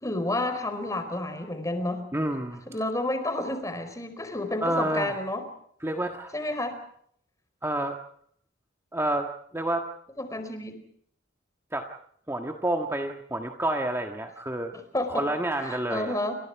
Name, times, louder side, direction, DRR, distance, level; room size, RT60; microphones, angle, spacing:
voice 1, 0.0-2.0 2.7-5.4 6.3-6.7 10.2-10.8 14.9-15.3 15.7-16.3, left 1 dB, 15° left, 8 dB, 4.6 m, -30 dB
voice 2, 2.1-2.6 4.6-5.2 5.8-6.3 7.6-8.0 8.9-9.9 11.7-11.9 12.3-14.7 15.1-16.2, right 1 dB, 15° right, 4 dB, 1.6 m, -29 dB
29.0 x 26.0 x 4.8 m, 0.65 s
head